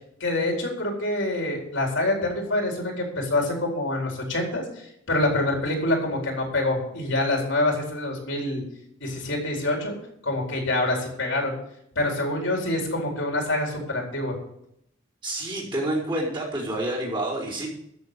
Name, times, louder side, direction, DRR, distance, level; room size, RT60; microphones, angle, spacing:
voice 1, 0.2-4.6 5.1-8.6 9.0-9.9 10.2-11.5 12.0-14.4, left 2 dB, 65° left, 1 dB, 4.3 m, -26 dB
voice 2, 15.2-17.7, right 1 dB, 25° right, -6 dB, 5.0 m, -28 dB
13.5 x 8.0 x 6.9 m, 0.74 s
head